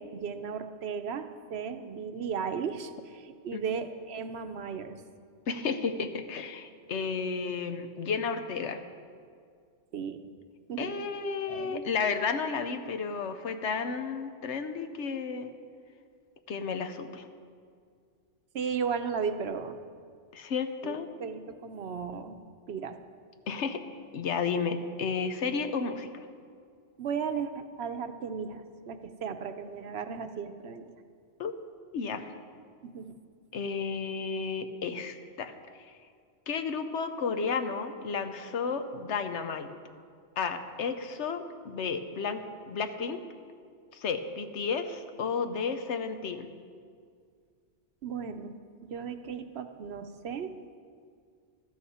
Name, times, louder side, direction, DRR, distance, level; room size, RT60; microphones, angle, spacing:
voice 1, 0.0-5.0 9.9-10.2 10.7-10.9 11.5-11.8 18.5-19.8 20.8-22.4 22.7-23.0 27.0-30.9 32.8-33.2 48.0-48.5 48.8-50.6, right 6 dB, 70° right, 9 dB, 0.9 m, -35 dB
voice 2, 5.5-8.8 10.8-15.5 16.5-17.3 20.3-21.1 23.5-23.8 24.1-26.2 31.4-31.5 31.9-32.3 33.5-35.9 36.5-39.7 40.4-43.2 43.9-46.5, left 5 dB, 80° left, 8 dB, 1.1 m, -32 dB
14.5 x 12.5 x 4.3 m, 2.1 s
omnidirectional pair, 1.2 m